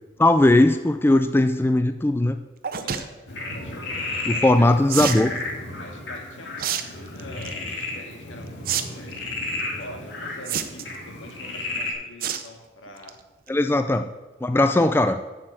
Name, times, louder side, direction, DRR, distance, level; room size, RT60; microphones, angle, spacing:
voice 1, 0.2-2.4 4.3-5.3 13.5-14.1 14.4-15.2, left 2 dB, 10° left, 9 dB, 0.3 m, -19 dB
sound 1, 2.6-3.0 4.9-5.2 6.6-6.8 7.2-7.5 8.6-8.8 9.1-9.2 10.5-11.0 12.2-12.5 12.9-13.1 13.5-13.6 13.8-13.9, right 8 dB, 50° right, 0.6 m, -27 dB
voice 2, 2.8-3.1 3.6-4.7 5.8-9.3 9.8-13.2 14.7-15.1, left 1 dB, 85° left, 3 dB, 1.9 m, -44 dB
Frog, 3.3-11.9, left 2 dB, 70° left, 2.1 m, -33 dB
7.6 x 6.5 x 7.8 m, 1.2 s
head